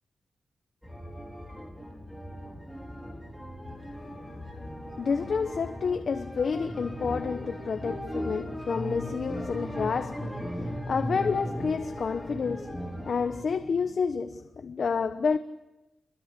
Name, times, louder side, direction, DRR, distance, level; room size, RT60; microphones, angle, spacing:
sound 1, 0.8-13.4, equal, ahead, 4.4 m, -37 dB
voice 1, 4.0-15.4, left 5 dB, 55° left, 1.1 m, -30 dB
28.5 x 22.5 x 8.5 m
wide cardioid pair, 130°, 0 cm